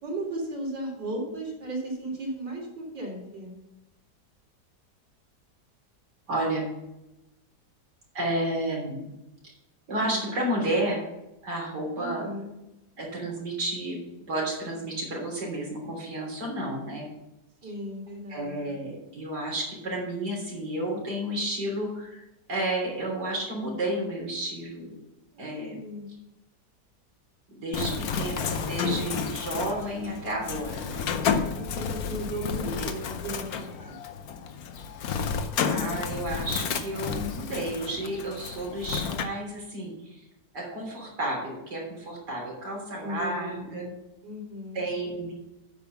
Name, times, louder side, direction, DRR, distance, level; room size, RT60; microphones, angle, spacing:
voice 1, 0.0-3.5 9.9-10.3 12.0-12.5 17.6-18.8 25.3-26.1 31.5-33.9 43.0-43.9 44.2-44.8, right 1 dB, 90° right, -3 dB, 4.0 m, -36 dB
voice 2, 6.3-6.7 8.1-9.1 9.4-9.5 9.9-11.0 11.4-12.3 13.0-14.0 14.3-17.1 17.6-17.7 18.3-22.2 22.5-25.0 25.4-25.8 27.5-31.1 35.7-40.2 40.5-43.9 44.7-45.3, right 1 dB, 70° right, -2 dB, 3.8 m, -31 dB
Bird, 27.7-39.2, left 6 dB, 65° left, 1.2 m, -31 dB
9.0 x 5.5 x 7.1 m, 0.93 s
omnidirectional pair, 1.9 m